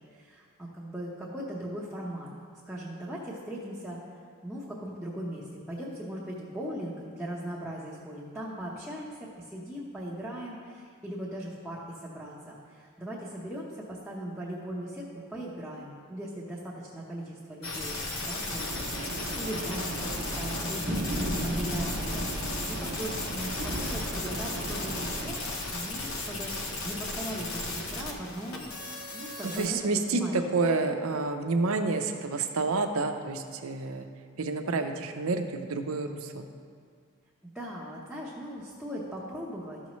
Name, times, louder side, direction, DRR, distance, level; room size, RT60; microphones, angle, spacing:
voice 1, 0.0-2.3 2.7-4.0 4.4-17.9 18.2-25.4 25.7-29.8 30.1-30.3 37.5-39.8, equal, ahead, -8 dB, 0.8 m, -39 dB
sound 1, 17.6-29.7, left 2 dB, 75° left, 1.0 m, -35 dB
sound 2, 18.6-25.3, right 1 dB, 45° right, 0.9 m, -35 dB
voice 2, 29.5-34.1 34.4-36.5, right 3 dB, 80° right, 6 dB, 0.6 m, -29 dB
13.0 x 6.2 x 3.1 m, 2.1 s
head